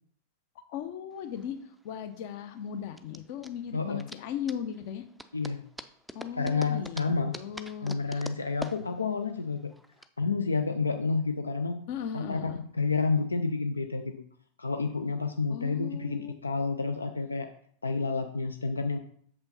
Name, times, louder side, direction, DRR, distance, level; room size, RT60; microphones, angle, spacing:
voice 1, 0.7-1.6 1.8-5.0 6.1-8.2 11.9-12.6 15.5-16.3, left 8 dB, 50° left, 9 dB, 0.8 m, -37 dB
sound 1, 1.2-10.1, equal, ahead, 0.4 m, -45 dB
voice 2, 3.7-4.1 5.3-5.7 6.4-7.3 7.8-9.7 10.2-11.8 12.1-12.4 12.7-14.1 14.6-17.5 17.8-19.0, left 4 dB, 80° left, 7 dB, 0.4 m, -29 dB
6.9 x 5.5 x 4.1 m, 0.62 s
figure-of-eight pair, 90°, 0 cm